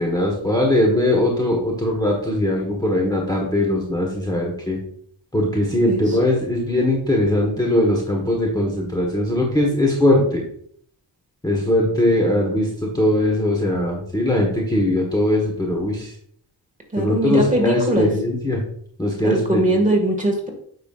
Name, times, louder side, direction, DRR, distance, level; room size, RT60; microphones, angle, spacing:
voice 1, 0.0-4.8 5.3-10.4 11.4-16.1 17.0-18.6 19.0-19.8, left 1 dB, 10° left, -2 dB, 1.3 m, -20 dB
voice 2, 16.9-18.1 19.2-20.5, right 1 dB, 20° right, 1 dB, 1.8 m, -21 dB
9.1 x 6.0 x 2.4 m, 0.64 s
wide cardioid pair, 120°, 43 cm